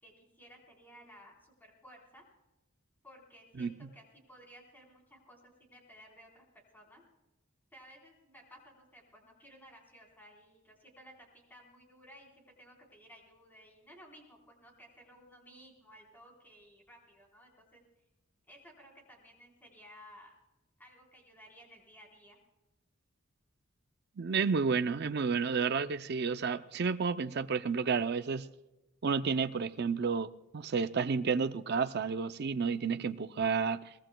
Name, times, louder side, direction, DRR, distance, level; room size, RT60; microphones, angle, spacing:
voice 1, 0.0-2.2 3.0-6.4 6.7-7.0 7.7-17.8 18.5-20.3 20.8-22.4, equal, 10° left, 3.9 m, -57 dB
voice 2, 24.2-28.5 29.0-33.9, right 5 dB, 50° right, 0.5 m, -31 dB
23.0 x 19.0 x 2.2 m
head